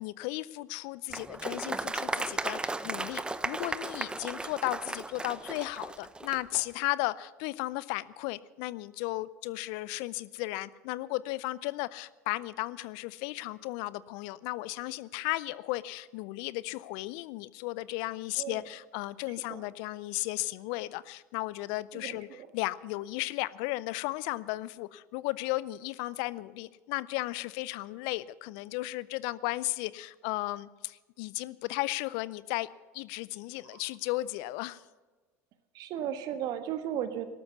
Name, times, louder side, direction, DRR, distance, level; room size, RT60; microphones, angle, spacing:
voice 1, 0.0-22.3 22.5-32.7 32.9-34.8, left 19 dB, 65° left, 19 dB, 0.5 m, -35 dB
Applause, 1.1-6.6, right 2 dB, 10° right, 0.7 m, -35 dB
voice 2, 21.9-22.5 33.7-33.8 35.7-37.3, right 10 dB, 55° right, 9 dB, 1.4 m, -35 dB
14.0 x 12.5 x 6.9 m, 1.3 s
hypercardioid pair, 75°, 8 cm